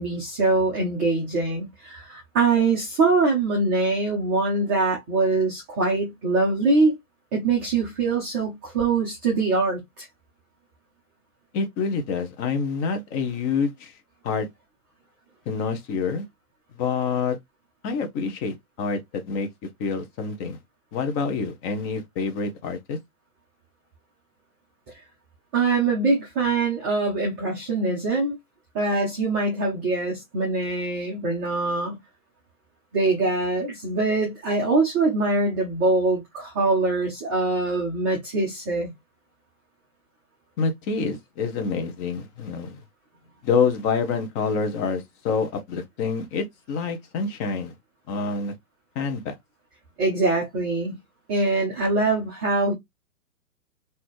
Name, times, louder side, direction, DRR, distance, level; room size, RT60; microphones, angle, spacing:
voice 1, 0.0-7.0 7.3-10.1 25.5-28.3 28.7-32.0 32.9-38.9 50.0-51.0 51.3-52.7, right 3 dB, 10° right, 0.3 m, -23 dB
voice 2, 11.5-13.9 14.2-14.5 15.5-16.2 16.8-17.4 17.8-19.5 19.8-20.6 20.9-23.0 40.6-42.8 43.4-47.7 48.1-48.5 48.9-49.3, left 5 dB, 25° left, 0.9 m, -27 dB
4.0 x 2.7 x 3.1 m
hypercardioid pair, 125°, 45 cm